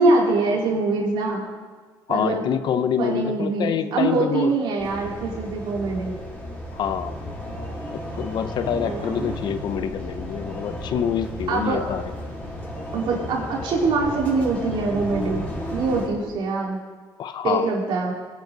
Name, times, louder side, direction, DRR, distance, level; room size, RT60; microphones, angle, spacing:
voice 1, 0.0-1.4 2.1-2.5 3.0-6.2 8.8-9.2 11.5-11.8 12.9-15.4 15.7-16.8 17.4-18.1, right 3 dB, 70° right, -3 dB, 4.3 m, -23 dB
voice 2, 2.1-4.5 6.7-7.2 7.9-12.0 17.2-17.7, left 8 dB, 55° left, 13 dB, 0.7 m, -26 dB
sound 1, 4.8-16.1, equal, 15° left, 4.9 m, -33 dB
21.5 x 10.5 x 4.0 m, 1.4 s
cardioid pair, 110°, 9 cm